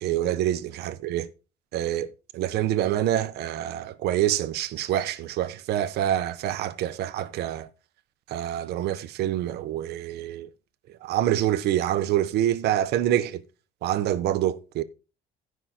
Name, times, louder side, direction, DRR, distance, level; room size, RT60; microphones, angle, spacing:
voice 1, 0.0-1.3 1.7-7.7 8.3-10.5 11.0-13.4 13.8-14.8, right 12 dB, 75° right, 0.8 m, -26 dB
16.5 x 5.6 x 2.9 m
cardioid pair, 110°, 17 cm